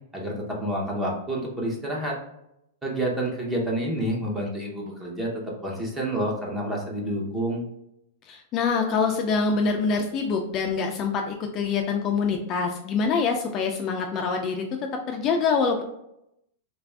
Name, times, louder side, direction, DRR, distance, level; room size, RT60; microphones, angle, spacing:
voice 1, 0.1-2.2 2.8-5.3 5.6-7.6, right 1 dB, 10° right, -2 dB, 0.8 m, -28 dB
voice 2, 8.3-14.6 15.1-15.8, left 5 dB, 30° left, 2 dB, 0.3 m, -25 dB
3.2 x 2.5 x 3.3 m, 0.82 s
supercardioid pair, 145°, 0 cm